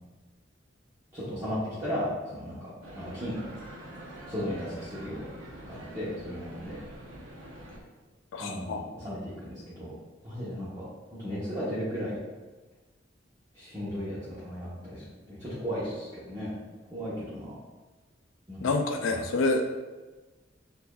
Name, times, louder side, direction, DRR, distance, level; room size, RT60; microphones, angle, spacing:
voice 1, 1.1-3.4 4.3-5.2 5.6-6.8 8.4-9.9 10.2-10.8 11.2-12.1 13.5-16.5 16.9-17.5 18.5-18.6 19.1-19.2, equal, 20° right, -12 dB, 0.9 m, -35 dB
sound 1, 2.8-7.8, right 1 dB, 80° right, 0.7 m, -45 dB
voice 2, 8.3-8.8 18.6-19.7, left 2 dB, 80° left, 4 dB, 0.4 m, -27 dB
6.6 x 2.6 x 2.3 m, 1.2 s
head